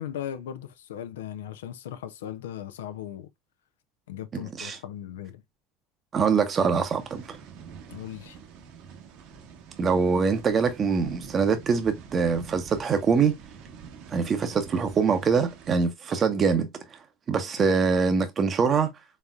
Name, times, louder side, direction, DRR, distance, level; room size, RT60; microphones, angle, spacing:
voice 1, 0.0-3.3 4.1-5.4 7.9-8.4, left 10 dB, 85° left, 0.5 m, -37 dB
voice 2, 4.3-4.8 6.1-7.4 9.8-13.4 14.1-17.0 17.3-18.9, right 5 dB, 35° right, 0.7 m, -24 dB
sound 1, 6.7-15.8, right 6 dB, 70° right, 1.0 m, -45 dB
4.2 x 3.5 x 2.4 m
hypercardioid pair, 85°, 0 cm